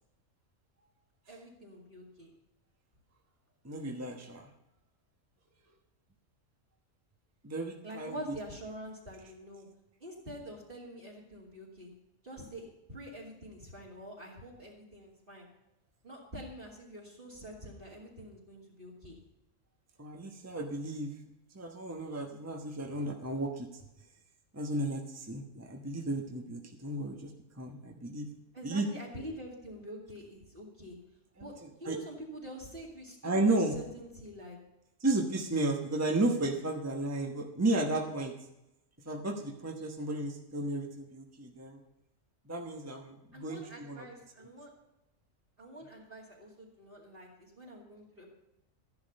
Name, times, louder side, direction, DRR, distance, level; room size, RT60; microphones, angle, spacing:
voice 1, 1.3-2.3 7.8-9.7 10.0-11.9 12.2-15.5 16.0-19.2 28.5-31.0 31.4-31.5 31.8-34.6 43.3-44.7 45.6-48.3, equal, 45° right, -4 dB, 2.9 m, -46 dB
voice 2, 3.6-4.5 7.4-8.4 9.2-9.3 20.0-21.1 21.5-23.8 24.5-27.3 27.6-28.3 28.6-28.8 31.4-32.0 33.2-33.7 35.0-38.3 39.0-41.8 42.5-44.1 44.4-44.5, right 2 dB, 15° right, 2 dB, 1.2 m, -33 dB
13.5 x 11.0 x 5.4 m, 0.89 s
omnidirectional pair, 1.3 m